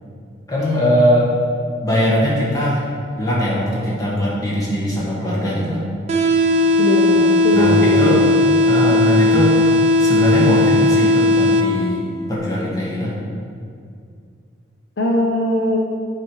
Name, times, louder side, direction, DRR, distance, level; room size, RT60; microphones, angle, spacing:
voice 1, 0.5-1.3 1.8-2.8 3.2-5.8 7.5-8.3 8.7-9.6 10.0-13.1, equal, 20° left, -6 dB, 1.5 m, -20 dB
sound 1, 6.1-12.1, left 2 dB, 35° right, 0.6 m, -16 dB
voice 2, 6.8-8.2 15.0-15.9, equal, 60° left, -1 dB, 0.7 m, -20 dB
7.3 x 5.0 x 4.7 m, 2.3 s
head